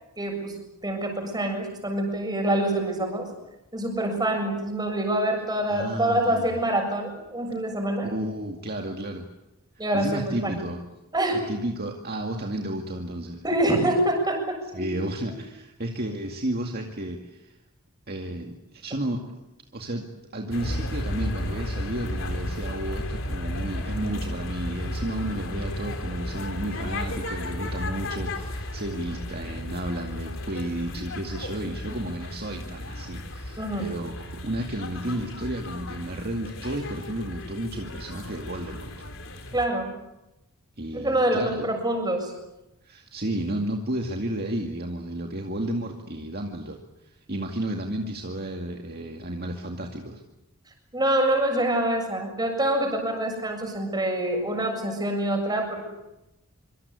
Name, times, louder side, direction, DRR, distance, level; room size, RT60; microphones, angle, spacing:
voice 1, 0.2-0.5 0.8-3.3 3.7-8.1 9.8-10.6 11.1-11.4 13.4-14.8 33.6-33.9 39.5-39.9 40.9-42.3 50.9-55.8, right 1 dB, 20° right, 3 dB, 7.1 m, -26 dB
voice 2, 5.7-6.5 8.0-9.3 9.9-10.8 11.5-13.4 14.7-17.6 18.1-19.2 19.7-38.9 40.8-41.7 42.8-46.8 47.0-50.2, right 1 dB, 45° right, 2 dB, 2.2 m, -32 dB
sound 1, 20.5-39.7, left 1 dB, 60° left, 3.9 m, -34 dB
25.5 x 25.0 x 8.3 m, 0.92 s
head